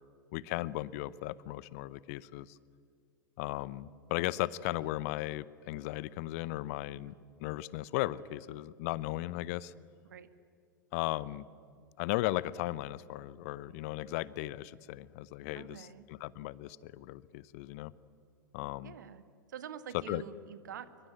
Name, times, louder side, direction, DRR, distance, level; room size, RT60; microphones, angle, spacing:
voice 1, 0.3-2.6 3.4-7.1 7.4-9.7 10.9-11.4 12.0-17.9 18.5-18.9 20.1-20.2, left 17 dB, 45° left, 21 dB, 0.7 m, -36 dB
voice 2, 15.5-16.0 18.8-19.2 19.5-21.1, right 8 dB, 65° right, 12 dB, 1.6 m, -46 dB
25.5 x 23.5 x 9.8 m, 2.1 s
figure-of-eight pair, 90°, 11 cm